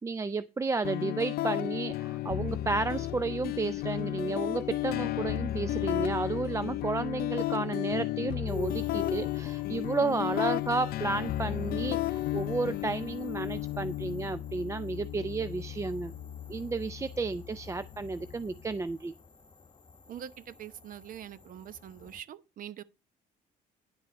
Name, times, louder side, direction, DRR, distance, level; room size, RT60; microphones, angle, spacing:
voice 1, 0.0-16.1 16.5-19.1, right 3 dB, 15° right, 0.4 m, -32 dB
sound 1, 0.8-18.8, left 14 dB, 65° left, 0.5 m, -34 dB
sound 2, 8.5-22.2, left 5 dB, 25° left, 1.2 m, -48 dB
voice 2, 20.1-22.8, right 10 dB, 55° right, 0.9 m, -44 dB
10.5 x 5.5 x 5.3 m
cardioid pair, 110°, 17 cm